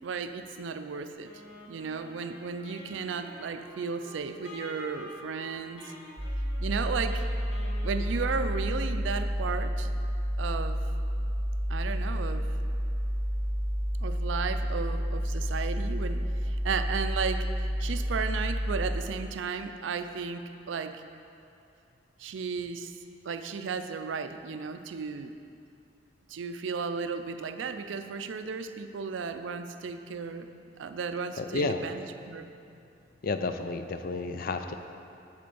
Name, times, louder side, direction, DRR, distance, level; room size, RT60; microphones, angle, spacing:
voice 1, 0.0-1.3 1.7-5.8 6.6-7.3 7.8-9.9 10.4-10.8 11.7-12.5 14.0-20.9 22.2-22.9 23.2-25.3 26.3-32.5, right 5 dB, 75° right, 9 dB, 0.4 m, -34 dB
Wind instrument woodwind instrument, 1.2-8.9, left 1 dB, 70° left, 1.4 m, -48 dB
sound 1, 6.2-19.0, equal, 15° right, 1.0 m, -30 dB
voice 2, 31.4-31.8 33.2-34.7, left 3 dB, 50° left, 8 dB, 0.4 m, -31 dB
7.6 x 4.3 x 6.9 m, 2.6 s
head